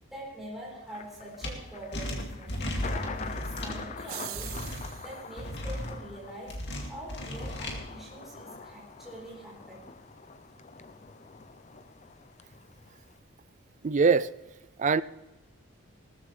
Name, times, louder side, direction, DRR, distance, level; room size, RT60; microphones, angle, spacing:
voice 1, 0.1-2.6 2.9-9.8, right 1 dB, ahead, -5 dB, 4.1 m, -44 dB
Thunder, 0.9-13.2, left 5 dB, 35° left, 0.6 m, -45 dB
sound 1, 1.4-1.5 1.9-3.8 4.3-4.9 5.4-5.9 6.5-7.8, left 1 dB, 55° left, 2.3 m, -35 dB
sound 2, 4.0-5.3, right 13 dB, 75° right, 0.8 m, -41 dB
voice 2, 13.8-14.3 14.8-15.0, right 5 dB, 35° right, 16 dB, 0.3 m, -22 dB
19.0 x 14.0 x 3.3 m, 1.0 s
head